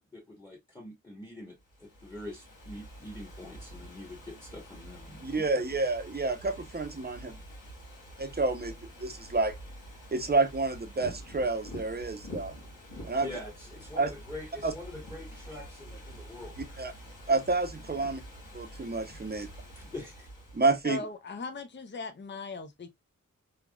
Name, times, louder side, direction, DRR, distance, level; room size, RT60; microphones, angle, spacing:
voice 1, 0.1-5.4 13.2-16.8 18.5-18.6 19.3-20.3, left 1 dB, 15° left, 1.1 m, -45 dB
Ocean / Fireworks, 1.6-20.9, equal, 85° left, 1.5 m, -47 dB
voice 2, 5.2-7.4 8.2-8.7 9.0-9.5 10.1-12.5 13.0-13.3 14.0-14.1 14.6-14.7 16.8-16.9 17.3-18.2 18.5-19.5 20.5-21.0, right 3 dB, 30° right, 0.7 m, -29 dB
voice 3, 20.8-22.9, left 3 dB, 35° left, 0.5 m, -39 dB
3.4 x 2.3 x 2.3 m
wide cardioid pair, 60°, 32 cm